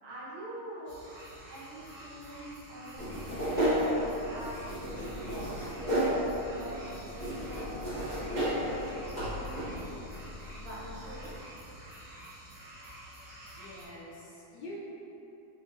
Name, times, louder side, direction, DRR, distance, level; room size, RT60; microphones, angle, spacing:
voice 1, 0.0-1.0 1.5-7.9 8.2-9.9 10.5-11.4, right 1 dB, 75° right, -7 dB, 1.7 m, -45 dB
sound 1, 0.9-13.9, right 1 dB, 60° right, 1.5 m, -49 dB
sound 2, 3.0-11.4, equal, 30° right, 1.3 m, -33 dB
voice 2, 13.6-14.8, left 2 dB, 70° left, -6 dB, 1.1 m, -46 dB
4.6 x 3.7 x 2.3 m, 3.0 s
omnidirectional pair, 2.3 m